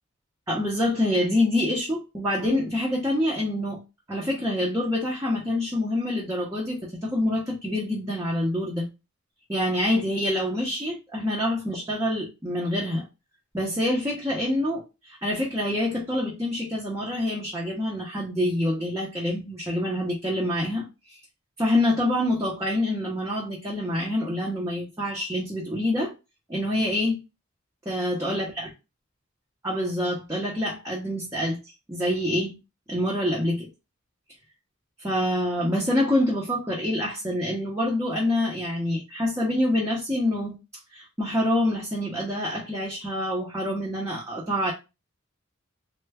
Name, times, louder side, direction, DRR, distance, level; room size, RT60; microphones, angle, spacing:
voice 1, 0.5-3.8 4.1-8.9 9.5-13.0 13.5-21.2 21.6-26.1 26.5-27.2 27.9-28.7 29.6-31.6 31.9-32.6 32.9-33.7 35.0-40.6 40.9-44.7, left 1 dB, 15° right, 0.7 m, -26 dB
3.2 x 2.2 x 3.4 m
head